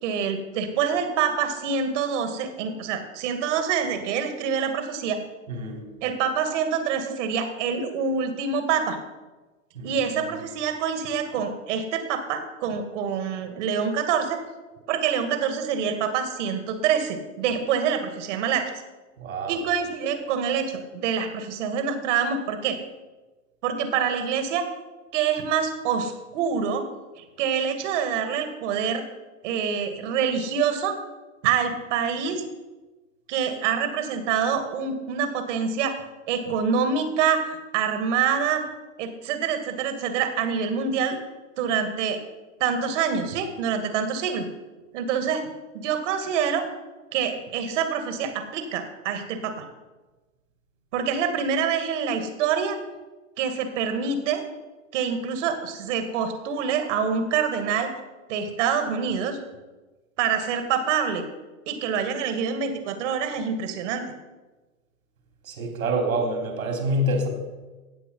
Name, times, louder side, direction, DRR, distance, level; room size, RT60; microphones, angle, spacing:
voice 1, 0.0-5.2 6.0-9.0 9.8-14.4 14.9-18.7 19.5-22.8 23.6-24.6 25.1-26.9 27.2-29.1 29.4-31.0 31.4-32.4 33.3-36.0 36.3-38.6 39.0-41.2 41.6-42.2 42.6-44.5 44.9-45.5 45.7-46.7 47.1-49.6 50.9-52.8 53.4-54.5 54.9-57.9 58.3-59.4 60.2-61.2 61.7-64.0, right 7 dB, 60° right, 7 dB, 2.3 m, -26 dB
voice 2, 5.5-5.8 9.7-10.0 19.2-19.6 65.4-67.3, right 1 dB, 80° right, 3 dB, 3.4 m, -26 dB
16.5 x 7.4 x 5.5 m, 1.2 s
hypercardioid pair, 105°, 41 cm